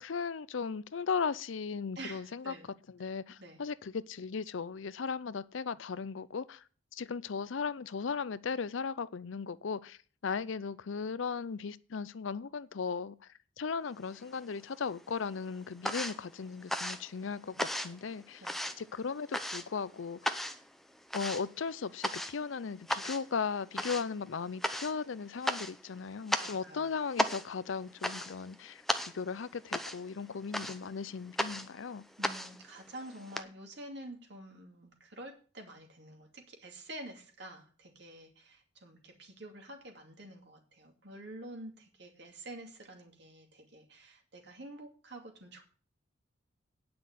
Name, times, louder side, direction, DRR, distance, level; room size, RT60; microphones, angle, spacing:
voice 1, 0.0-2.5 3.0-6.6 6.9-13.2 13.6-18.4 18.8-20.4 21.1-28.8 29.1-32.0, left 5 dB, 75° left, 0.5 m, -37 dB
voice 2, 2.0-2.7 3.0-3.1 3.4-3.6 18.4-18.6 26.4-26.9 32.2-45.6, right 1 dB, 60° right, 2.6 m, -48 dB
sound 1, 14.1-14.9 15.1-33.4, equal, ahead, 0.6 m, -36 dB
9.6 x 6.0 x 8.1 m
head